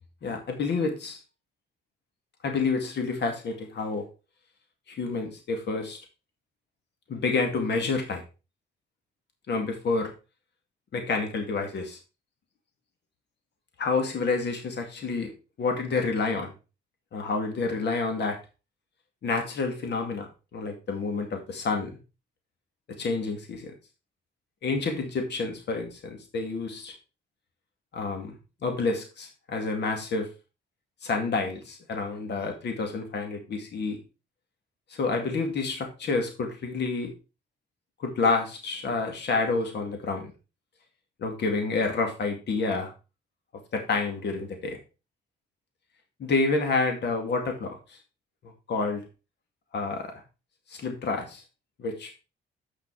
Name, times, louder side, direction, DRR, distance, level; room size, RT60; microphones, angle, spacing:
voice 1, 0.2-1.2 2.4-4.1 4.9-6.0 7.1-8.2 9.5-10.1 10.9-12.0 13.8-15.3 15.6-16.5 17.1-18.4 19.2-22.0 23.0-23.7 24.6-26.9 27.9-28.4 28.6-30.3 31.0-34.0 34.9-37.1 38.0-40.3 41.2-42.9 43.7-44.8 46.2-48.0 48.7-49.0 49.7-50.1 50.7-51.4 51.8-52.1, left 4 dB, 60° left, 4 dB, 2.2 m, -29 dB
8.1 x 6.4 x 4.7 m, 0.31 s
cardioid pair, 90°, 20 cm